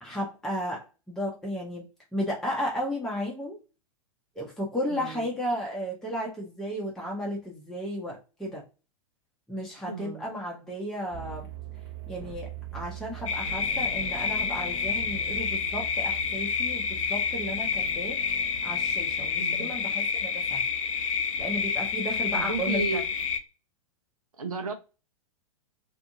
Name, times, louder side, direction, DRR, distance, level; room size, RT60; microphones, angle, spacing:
voice 1, 0.0-3.6 4.4-8.6 9.5-11.5 12.1-18.2 18.6-20.6 21.4-23.0, equal, ahead, 0.7 m, -34 dB
voice 2, 4.9-5.3 9.9-10.3 19.4-19.8 22.3-23.0 24.4-24.7, right 3 dB, 75° right, 0.7 m, -33 dB
sound 1, 11.1-19.3, right 11 dB, 45° right, 1.1 m, -42 dB
sound 2, 13.3-23.4, left 6 dB, 60° left, 0.6 m, -29 dB
2.5 x 2.5 x 2.7 m
figure-of-eight pair, 100°, 18 cm